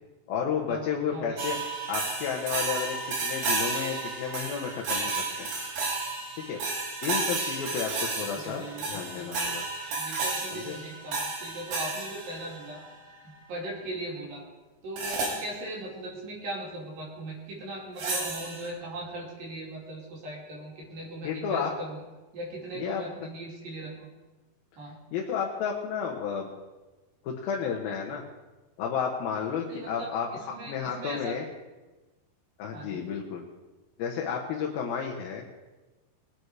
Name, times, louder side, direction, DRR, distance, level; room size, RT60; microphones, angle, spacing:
voice 1, 0.3-1.6 1.9-5.5 6.4-6.6 7.0-9.6 10.5-10.8 21.2-21.7 22.8-23.0 25.1-26.5 27.2-28.2 28.8-31.4 32.6-33.4 34.0-35.5, left 7 dB, 70° left, 0 dB, 3.0 m, -32 dB
voice 2, 1.1-1.5 8.3-9.3 10.0-12.8 13.2-14.4 14.8-22.0 22.3-24.1 24.8-25.0 29.7-31.4 32.7-33.0, right 1 dB, 60° right, -3 dB, 4.5 m, -39 dB
sound 1, 1.4-12.9 15.0-15.5 18.0-18.7, right 3 dB, 75° right, 4.7 m, -32 dB
21.5 x 9.4 x 4.8 m, 1.2 s
omnidirectional pair, 4.6 m